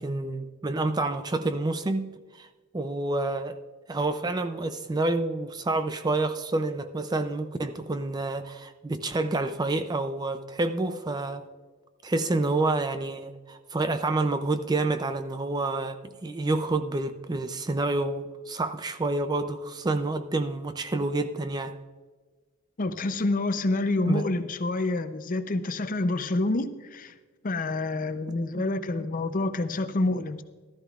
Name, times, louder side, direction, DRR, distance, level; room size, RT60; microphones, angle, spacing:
voice 1, 0.0-2.5 2.7-3.6 3.9-11.5 12.0-21.8 24.1-24.3 28.5-28.6, right 2 dB, 20° right, 9 dB, 0.4 m, -28 dB
voice 2, 22.8-27.1 27.4-30.4, left 2 dB, 40° left, 10 dB, 0.6 m, -27 dB
14.5 x 13.0 x 2.4 m, 1.4 s
head